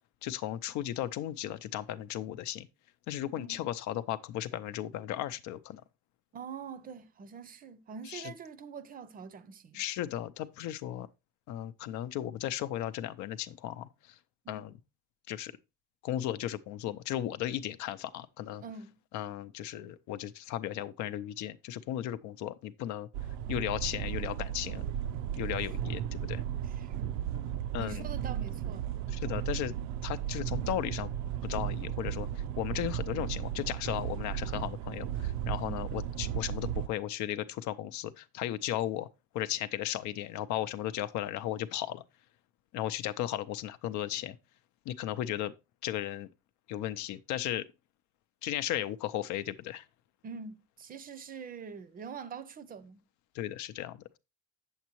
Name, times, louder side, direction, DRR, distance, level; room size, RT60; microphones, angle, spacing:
voice 1, 0.2-2.7 3.1-5.8 8.1-8.3 9.7-11.1 11.5-14.2 14.5-14.7 15.3-15.5 16.0-18.6 19.1-23.1 23.5-24.9 25.4-26.4 27.7-28.0 29.1-29.7 30.0-31.1 31.4-39.1 39.3-42.0 42.7-44.4 44.9-45.5 45.8-46.3 46.7-47.7 48.4-49.8 53.3-54.2, left 12 dB, 75° left, 0.6 m, -35 dB
voice 2, 6.3-9.8 14.4-14.6 18.6-19.0 26.7-27.3 27.8-28.9 35.6-35.8 50.2-53.0, right 5 dB, 30° right, 0.5 m, -44 dB
sound 1, 23.1-36.9, right 11 dB, 75° right, 0.5 m, -35 dB
8.2 x 7.3 x 3.0 m
cardioid pair, 175°, 29 cm